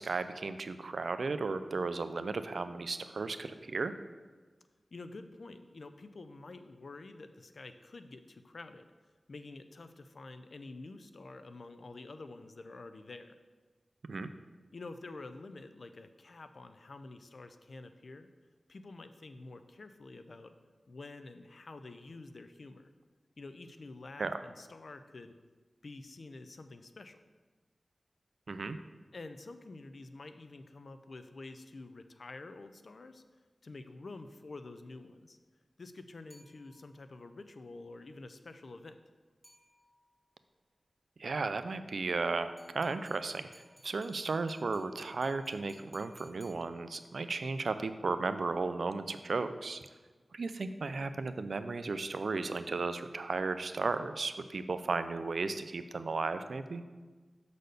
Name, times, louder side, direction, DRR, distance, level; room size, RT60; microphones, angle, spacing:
voice 1, 0.0-3.9 14.1-14.3 24.2-24.4 28.5-28.8 41.2-43.5 43.8-49.9 50.3-56.8, right 3 dB, 80° right, 11 dB, 0.4 m, -35 dB
voice 2, 4.9-8.9 9.3-13.4 14.7-18.3 18.7-20.5 20.9-22.9 23.4-25.3 25.8-27.2 29.1-33.2 33.6-35.4 35.8-39.0, left 3 dB, 70° left, 9 dB, 0.5 m, -48 dB
sound 1, 36.3-37.1 39.4-40.2 42.6-47.2, equal, 10° left, 2.4 m, -62 dB
6.6 x 4.1 x 6.5 m, 1.3 s
cardioid pair, 55°, 0 cm